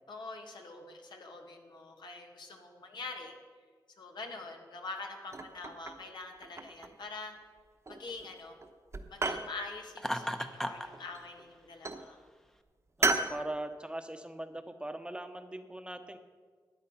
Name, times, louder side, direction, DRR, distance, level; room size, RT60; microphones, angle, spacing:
voice 1, 0.1-3.3 4.0-7.4 7.9-8.6 9.1-12.2, left 3 dB, 80° left, 2 dB, 1.8 m, -45 dB
sound 1, 5.3-6.1 6.4-7.1 7.9-8.3 8.6-9.5 10.9-11.5 11.8-12.1 13.0-13.4, right 3 dB, 40° right, 1.0 m, -33 dB
Laughter, 10.0-10.9, equal, 5° left, 0.8 m, -34 dB
voice 2, 13.0-16.2, right 1 dB, 15° right, 8 dB, 0.9 m, -40 dB
13.0 x 9.2 x 5.6 m, 1.5 s
cardioid pair, 75°, 8 cm